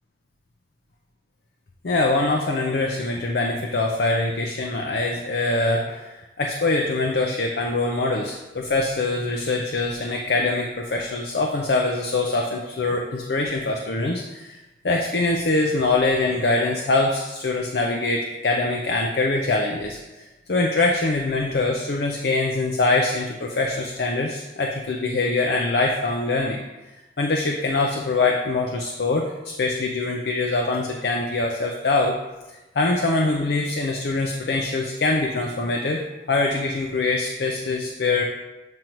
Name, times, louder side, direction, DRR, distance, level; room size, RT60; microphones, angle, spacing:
voice 1, 1.8-14.6 14.8-20.0 20.5-26.6 27.2-32.2 32.5-36.0 36.3-38.2, left 2 dB, 65° left, 0 dB, 0.6 m, -23 dB
7.7 x 5.1 x 3.0 m, 1.1 s
head